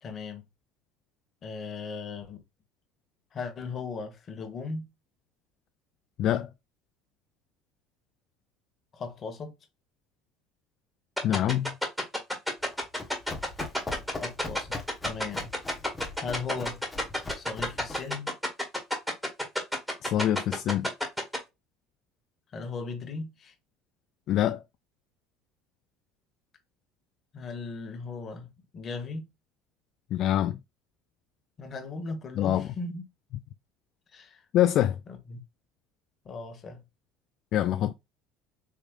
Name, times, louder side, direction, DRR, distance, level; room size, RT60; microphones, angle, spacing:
voice 1, 0.0-0.4 1.4-2.4 3.3-4.9 8.9-9.5 14.2-14.8 15.0-15.5 16.2-16.8 17.3-18.3 22.5-23.5 27.3-29.3 31.6-33.0 34.1-34.4 35.1-35.4 36.2-36.8, left 4 dB, 40° left, 1.3 m, -37 dB
voice 2, 6.2-6.5 11.2-11.8 20.0-20.9 24.3-24.6 30.1-30.6 32.4-32.7 34.5-35.0 37.5-37.9, left 12 dB, 55° left, 0.3 m, -25 dB
sound 1, 11.2-21.4, left 1 dB, ahead, 1.9 m, -28 dB
Run, 12.6-18.2, left 3 dB, 20° left, 1.1 m, -41 dB
4.8 x 3.2 x 2.4 m
supercardioid pair, 95°, 0 cm